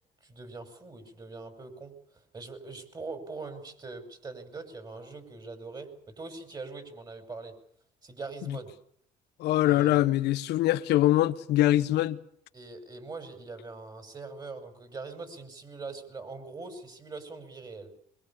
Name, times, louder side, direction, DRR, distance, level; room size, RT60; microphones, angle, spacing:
voice 1, 0.2-1.9 2.3-7.6 8.0-8.7 9.6-10.1 12.5-17.9, right 3 dB, 25° right, 5.5 m, -42 dB
voice 2, 9.4-12.2, left 15 dB, 80° left, 1.0 m, -23 dB
24.5 x 22.5 x 7.2 m
cardioid pair, 110°, 17 cm